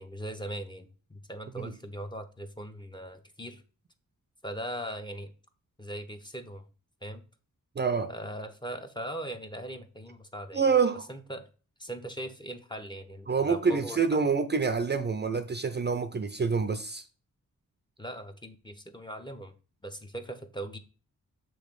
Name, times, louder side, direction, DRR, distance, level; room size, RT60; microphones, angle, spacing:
voice 1, 0.0-3.6 4.4-5.3 5.8-6.6 7.0-7.2 8.1-10.6 11.1-11.5 11.8-14.3 18.0-19.5 19.8-20.8, right 1 dB, 15° left, 0.6 m, -40 dB
voice 2, 7.8-8.1 10.5-11.1 13.3-17.0, right 5 dB, 35° right, 0.4 m, -27 dB
6.9 x 3.1 x 5.1 m
wide cardioid pair, 135°, 33 cm